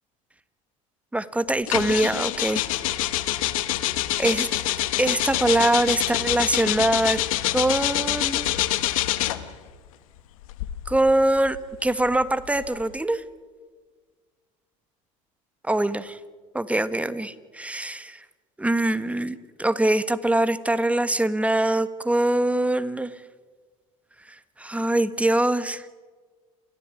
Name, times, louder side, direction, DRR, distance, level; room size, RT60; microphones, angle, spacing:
voice 1, 1.1-2.7 4.2-4.5 5.0-7.2 7.5-8.5 10.9-11.6 11.8-13.2 15.6-16.2 16.5-18.2 18.6-23.1 24.6-25.8, right 1 dB, 10° right, 13 dB, 1.5 m, -23 dB
sound 1, 1.7-9.5 10.4-12.9, left 15 dB, 80° left, 1.4 m, -26 dB
29.0 x 14.0 x 9.9 m, 1.5 s
hypercardioid pair, 75°, 17 cm